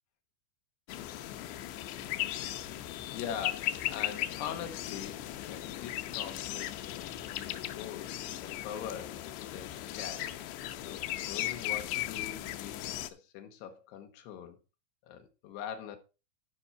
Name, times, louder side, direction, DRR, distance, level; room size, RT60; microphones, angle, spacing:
sound 1, 0.9-13.1, left 14 dB, 90° left, 2.5 m, -37 dB
voice 1, 2.7-8.1 8.4-10.4 10.7-14.6 15.0-16.0, left 8 dB, 70° left, 2.7 m, -43 dB
13.0 x 5.3 x 4.5 m
omnidirectional pair, 5.9 m